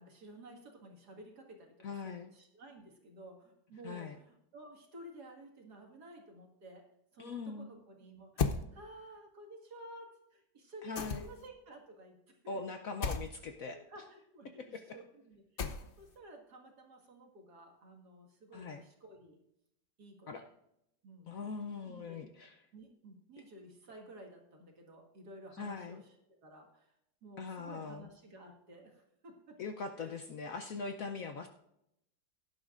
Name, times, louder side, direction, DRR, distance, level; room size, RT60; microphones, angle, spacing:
voice 1, 0.0-1.7 2.0-6.8 7.1-12.7 13.6-19.4 20.0-20.5 21.0-21.4 21.8-22.2 22.7-26.1 26.4-26.9 27.2-29.6 30.0-30.1, right 1 dB, 60° right, 1 dB, 2.4 m, -53 dB
voice 2, 1.8-2.3 3.8-4.2 7.2-7.7 10.8-11.2 12.5-13.8 14.6-15.0 18.5-18.8 20.3-20.4 21.3-22.6 25.6-26.0 27.4-28.1 29.6-31.5, left 4 dB, 60° left, 6 dB, 0.9 m, -41 dB
sound 1, 8.4-8.6 11.0-11.5 13.0-13.3 15.6-16.1, left 5 dB, 75° left, 0.5 m, -34 dB
17.0 x 10.5 x 2.5 m, 0.81 s
omnidirectional pair, 2.0 m